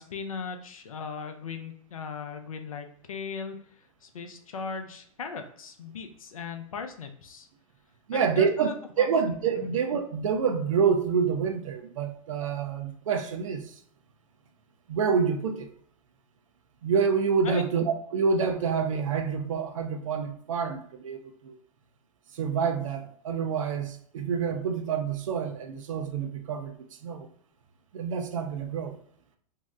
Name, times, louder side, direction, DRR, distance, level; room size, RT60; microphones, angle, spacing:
voice 1, 0.0-7.5 8.1-9.1 9.5-9.7 17.4-17.7, left 5 dB, 75° left, 0.5 m, -38 dB
voice 2, 8.1-13.6 14.9-15.7 16.8-21.2 21.4-21.5 22.4-26.7 27.0-27.3 27.9-29.0, right 6 dB, 65° right, 0.5 m, -27 dB
2.7 x 2.0 x 3.5 m
figure-of-eight pair, 105°, 18 cm